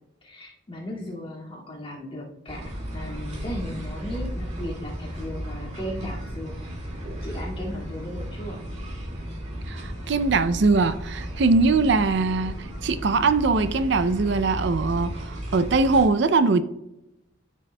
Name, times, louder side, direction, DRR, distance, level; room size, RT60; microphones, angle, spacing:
voice 1, 0.2-2.6 2.9-6.5 7.2-8.6, equal, 30° left, -4 dB, 2.2 m, -36 dB
sound 1, 2.5-16.1, equal, 35° right, 2.1 m, -34 dB
voice 2, 9.7-16.6, right 3 dB, 65° right, 12 dB, 0.5 m, -22 dB
13.0 x 6.2 x 2.2 m, 0.88 s
head